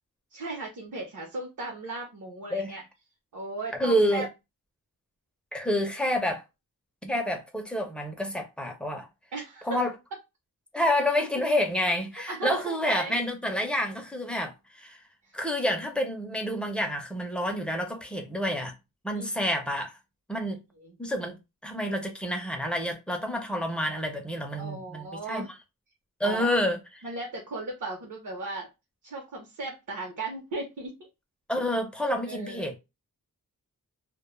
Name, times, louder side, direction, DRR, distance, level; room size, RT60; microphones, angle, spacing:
voice 1, 0.3-2.8 3.3-4.2 9.3-9.8 12.1-13.1 15.2-15.3 19.1-19.3 20.8-20.9 24.6-25.5 26.2-26.5 27.0-28.7 29.0-31.1 32.2-32.7, right 3 dB, 60° right, 0.7 m, -36 dB
voice 2, 2.5-2.8 3.8-4.3 5.5-6.4 7.0-9.1 9.6-9.9 10.7-15.0 15.3-18.7 19.0-19.9 20.3-20.6 21.0-21.4 21.6-25.5 26.2-26.8 31.5-32.8, equal, 5° left, 0.4 m, -28 dB
2.2 x 2.0 x 3.0 m
wide cardioid pair, 150°, 34 cm